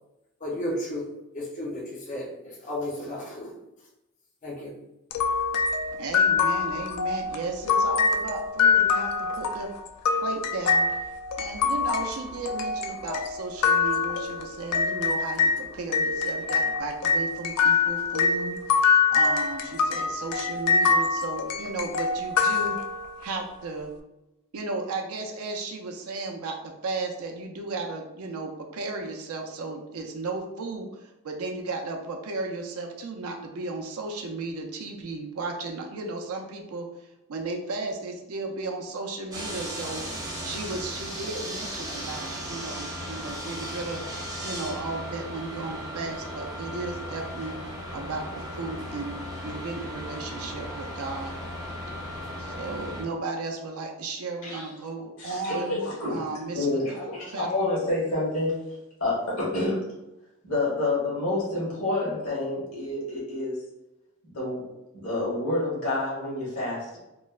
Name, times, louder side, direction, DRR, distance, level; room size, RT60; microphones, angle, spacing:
voice 1, 0.4-1.1 1.3-3.5 4.4-4.7, left 1 dB, 35° left, -5 dB, 0.5 m, -33 dB
sound 1, 5.1-15.6 15.9-23.3, left 5 dB, 90° left, 0.3 m, -25 dB
voice 2, 6.0-9.7 10.2-10.9 11.4-22.8 23.2-23.9 24.5-36.9 37.3-40.0 40.4-44.0 44.4-47.6 47.9-51.3 51.7-51.8 52.4-55.8 56.1-56.8 57.3-58.0, right 3 dB, 75° right, 2 dB, 0.4 m, -35 dB
sound 2, 39.3-53.0, equal, 15° right, 0.4 m, -36 dB
voice 3, 55.2-56.2 56.5-58.5 59.0-59.8 60.4-63.6 64.3-64.6 64.9-67.0, left 2 dB, 65° left, -6 dB, 1.3 m, -28 dB
3.0 x 2.0 x 2.3 m, 0.95 s
head